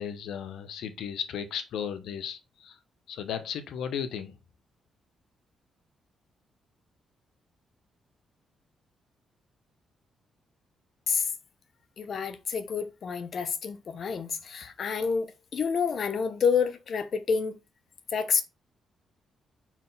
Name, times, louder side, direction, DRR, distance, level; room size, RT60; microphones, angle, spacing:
voice 1, 0.0-2.8 3.1-4.3, left 8 dB, 80° left, 0.9 m, -35 dB
voice 2, 12.0-17.6 18.1-18.4, left 6 dB, 45° left, 0.8 m, -28 dB
4.5 x 4.0 x 5.4 m
cardioid pair, 150°, 0 cm